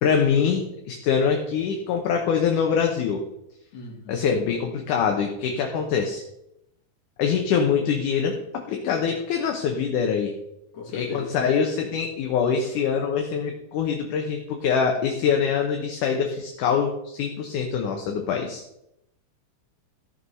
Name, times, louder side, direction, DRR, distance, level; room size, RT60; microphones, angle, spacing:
voice 1, 0.0-3.2 4.1-6.2 7.2-10.3 10.9-18.6, left 6 dB, 70° left, 2 dB, 2.4 m, -24 dB
voice 2, 3.7-4.2 10.7-11.3, left 4 dB, 55° left, 0 dB, 3.2 m, -37 dB
14.0 x 6.4 x 5.6 m, 0.82 s
omnidirectional pair, 4.1 m